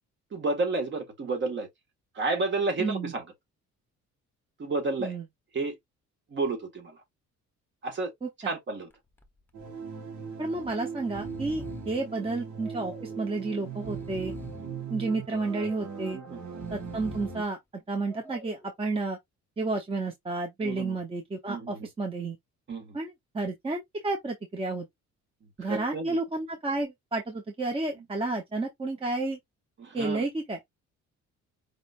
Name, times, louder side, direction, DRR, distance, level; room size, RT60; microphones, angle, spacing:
voice 1, 0.3-1.7 2.1-3.2 4.6-5.2 5.5-5.7 6.3-7.0 7.8-8.1 8.4-8.9 16.1-16.4 20.6-21.0 21.5-21.9 22.7-22.9 25.6-26.2 29.8-30.2, right 3 dB, 40° right, 1.8 m, -31 dB
voice 2, 2.8-3.1 5.0-5.2 8.2-8.5 10.4-14.3 14.9-16.2 16.7-19.2 19.6-22.4 22.9-24.9 25.6-29.4 29.9-30.6, right 3 dB, 20° right, 0.9 m, -31 dB
Breathing, 8.9-9.3 9.6-9.7 10.5-10.7 11.0-12.0 12.6-13.2 13.7-14.7 15.3-15.9 16.5-17.5 18.0-18.7, left 2 dB, 5° left, 0.9 m, -45 dB
sound 1, 9.5-17.4, right 6 dB, 80° right, 2.3 m, -39 dB
5.1 x 3.8 x 2.5 m
cardioid pair, 160°, 29 cm